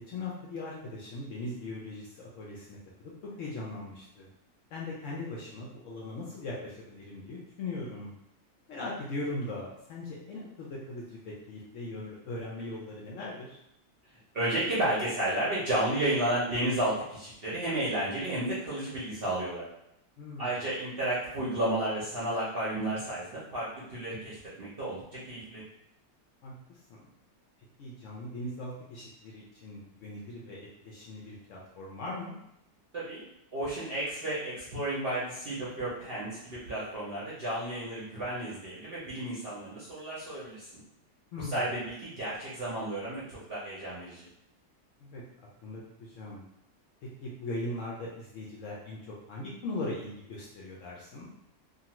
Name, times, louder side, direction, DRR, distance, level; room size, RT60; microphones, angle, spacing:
voice 1, 0.1-3.1 3.4-4.3 4.7-8.1 8.7-13.6 20.2-20.6 26.4-27.0 27.8-32.4 41.3-41.7 45.0-45.2 45.6-46.4 47.0-51.3, left 2 dB, 70° left, -4 dB, 0.8 m, -39 dB
voice 2, 14.3-19.7 20.4-25.6 32.9-33.2 33.5-40.7 41.4-44.2, right 1 dB, 55° right, -8 dB, 0.7 m, -32 dB
2.6 x 2.4 x 2.9 m, 0.79 s
omnidirectional pair, 1.7 m